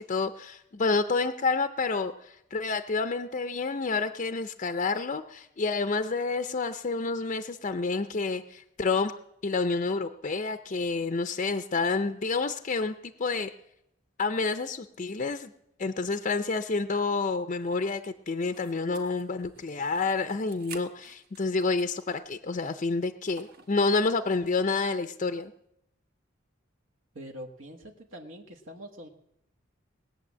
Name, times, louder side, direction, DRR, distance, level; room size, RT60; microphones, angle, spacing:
voice 1, 0.0-9.1 9.4-13.5 14.2-15.5 15.8-25.5, left 3 dB, 35° left, 9 dB, 0.5 m, -29 dB
sound 1, 18.5-22.1 22.5-22.6 23.3-23.8, right 5 dB, 50° right, 1.3 m, -50 dB
voice 2, 27.1-29.1, equal, 75° right, 2 dB, 1.4 m, -44 dB
20.0 x 8.3 x 7.4 m, 0.83 s
head